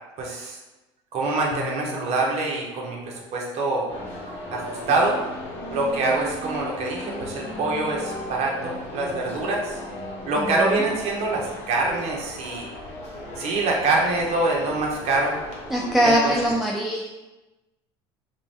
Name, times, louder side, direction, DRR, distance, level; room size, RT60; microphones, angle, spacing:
voice 1, 0.2-0.6 1.1-3.9 4.5-5.2 5.7-9.8 10.3-12.7 13.4-15.4 16.0-16.3, right 2 dB, 50° right, -1 dB, 0.7 m, -25 dB
sound 1, 1.5-4.8 5.2-5.3, left 6 dB, 70° left, 0.4 m, -43 dB
sound 2, 3.9-16.6, left 1 dB, 50° left, 0.9 m, -36 dB
voice 2, 10.4-10.8 15.7-17.1, equal, ahead, -3 dB, 0.3 m, -22 dB
2.5 x 2.2 x 3.2 m, 1.1 s
supercardioid pair, 90°, 14 cm